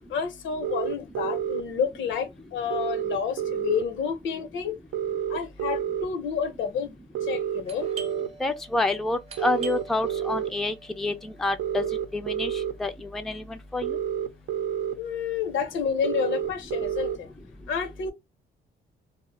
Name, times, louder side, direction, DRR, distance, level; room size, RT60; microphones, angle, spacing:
voice 1, 0.1-4.7 5.3-6.9 7.2-7.9 15.0-17.3 17.7-18.1, left 7 dB, 75° left, 0.7 m, -29 dB
sound 1, 0.6-1.6 2.7-3.8 4.9-6.1 7.1-8.3 9.4-10.5 11.6-12.7 13.8-14.9 16.0-17.2, right 9 dB, 80° right, 0.6 m, -29 dB
Doorbell, 7.7-13.1, right 4 dB, 30° right, 0.7 m, -45 dB
voice 2, 8.4-11.8 12.1-12.5 12.8-14.0, left 2 dB, ahead, 0.4 m, -28 dB
2.1 x 2.0 x 3.8 m
cardioid pair, 90°, 20 cm